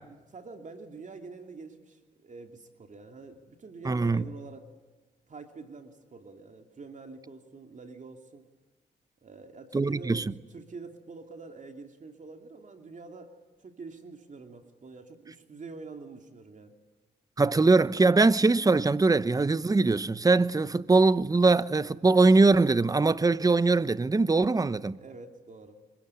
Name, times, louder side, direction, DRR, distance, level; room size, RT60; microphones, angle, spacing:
voice 1, 0.0-4.8 5.3-8.4 9.2-10.2 10.5-16.7 25.0-25.8, right 4 dB, 45° right, 2.7 m, -46 dB
voice 2, 3.8-4.2 9.7-10.2 17.4-25.0, right 3 dB, 20° right, 0.9 m, -22 dB
25.5 x 22.5 x 9.8 m
cardioid pair, 65°, 17 cm